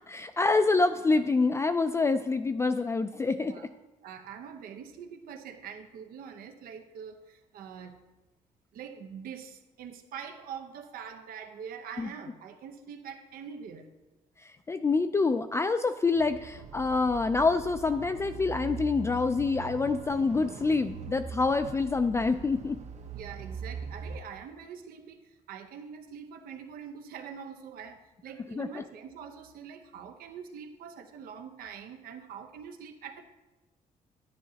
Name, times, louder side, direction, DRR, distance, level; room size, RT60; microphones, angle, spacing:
voice 1, 0.1-3.6 12.0-12.1 14.4-22.8 28.6-28.7, left 3 dB, 20° left, 8 dB, 0.3 m, -26 dB
voice 2, 4.0-8.0 8.7-13.9 23.1-33.2, right 7 dB, 85° right, 5 dB, 0.9 m, -44 dB
sound 1, 16.1-24.2, right 5 dB, 50° right, 0.8 m, -42 dB
11.5 x 10.0 x 2.9 m, 1.1 s
cardioid pair, 135°, 15 cm